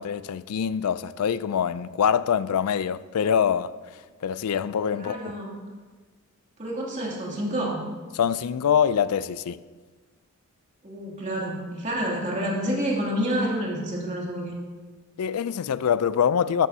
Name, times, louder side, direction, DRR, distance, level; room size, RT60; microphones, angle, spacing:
voice 1, 0.0-3.7 4.2-5.4 8.1-9.6 15.2-16.7, left 8 dB, 85° left, 0.4 m, -24 dB
voice 2, 4.9-5.5 6.6-7.8 10.8-14.5, equal, 35° right, 2.6 m, -28 dB
13.0 x 12.5 x 2.8 m
head